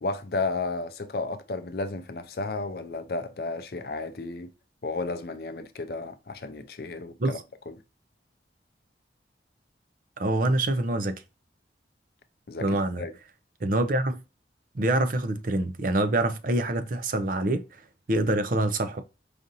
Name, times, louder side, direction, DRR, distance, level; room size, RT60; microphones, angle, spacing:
voice 1, 0.0-4.5 4.8-7.4 7.7-7.8 12.5-13.1, left 3 dB, 55° left, 0.5 m, -33 dB
voice 2, 10.2-11.2 12.6-13.0 13.6-14.2 14.7-17.6 18.1-19.0, right 2 dB, 50° right, 0.5 m, -25 dB
5.0 x 2.6 x 2.6 m
head